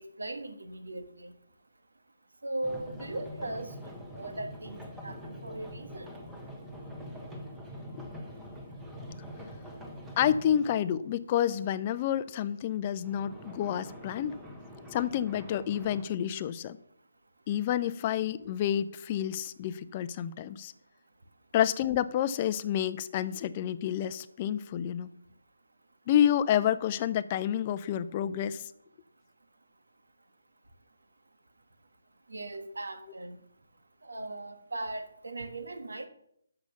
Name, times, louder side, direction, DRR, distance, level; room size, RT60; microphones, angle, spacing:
voice 1, 0.0-1.3 2.4-3.7 4.1-6.2 32.3-33.4 34.0-36.1, right 2 dB, 80° right, 7 dB, 1.4 m, -38 dB
sound 1, 2.6-10.8 13.0-16.1, equal, 5° right, 1.3 m, -44 dB
voice 2, 10.2-14.3 14.9-16.8 17.5-20.7 21.5-25.1 26.1-28.7, left 10 dB, 30° left, 14 dB, 0.5 m, -29 dB
6.7 x 6.2 x 7.0 m, 0.72 s
figure-of-eight pair, 155°, 0 cm